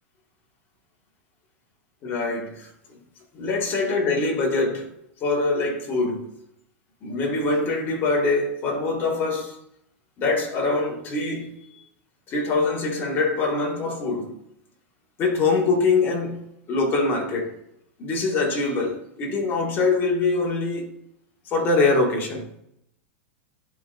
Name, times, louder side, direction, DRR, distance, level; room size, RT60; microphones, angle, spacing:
voice 1, 2.0-2.7 3.3-4.9 5.2-6.3 7.0-9.6 10.2-11.5 12.3-14.4 15.2-17.6 18.0-20.9 21.5-22.5, left 3 dB, 30° left, 1.8 m, -24 dB
11.0 x 3.9 x 2.6 m
supercardioid pair, 140°, 7 cm